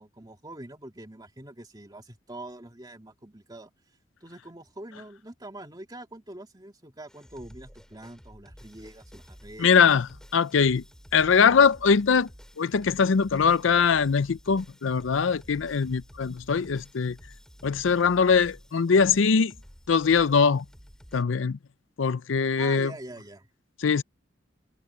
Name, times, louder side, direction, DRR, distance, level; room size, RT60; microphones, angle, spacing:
voice 1, 0.0-3.7 4.2-9.8 22.6-23.5, right 1 dB, 20° right, 2.7 m, -44 dB
sound 1, 7.1-21.2, equal, 5° left, 5.4 m, -51 dB
voice 2, 9.6-10.1 10.3-10.8 11.1-12.3 12.6-17.2 17.6-19.5 19.9-20.6 21.1-21.6 22.0-22.9 23.8-24.0, left 6 dB, 70° left, 0.5 m, -22 dB
head